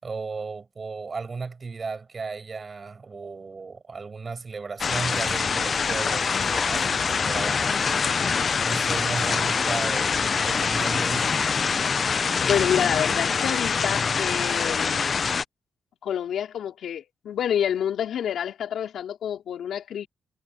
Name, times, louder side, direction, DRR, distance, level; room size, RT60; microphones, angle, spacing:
voice 1, 0.0-7.9 8.6-11.3, right 4 dB, 35° right, 5.5 m, -35 dB
sound 1, 4.8-15.4, left 5 dB, 40° left, 0.4 m, -24 dB
sound 2, 6.2-6.6 7.9-8.3 9.4-9.9, left 7 dB, 55° left, 5.7 m, -41 dB
voice 2, 12.5-15.2 16.0-20.1, left 9 dB, 75° left, 3.6 m, -28 dB
cardioid pair, 125°, 0 cm